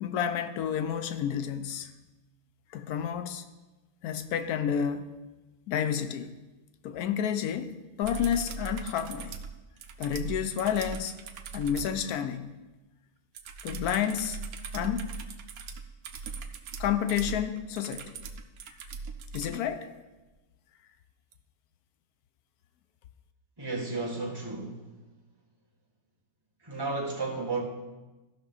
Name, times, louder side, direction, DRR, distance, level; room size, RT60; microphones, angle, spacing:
voice 1, 0.0-1.9 2.7-3.5 4.0-5.1 5.7-6.4 6.8-9.4 10.0-11.1 11.5-12.6 13.6-14.4 14.7-15.1 16.8-18.2 19.3-19.9, left 8 dB, 90° left, 1.1 m, -30 dB
sound 1, 8.0-12.0 13.3-19.6 21.3-21.4, right 5 dB, 80° right, 1.2 m, -40 dB
voice 2, 23.6-24.8 26.6-27.6, right 3 dB, 15° right, 1.7 m, -33 dB
14.5 x 6.0 x 4.0 m
omnidirectional pair, 1.6 m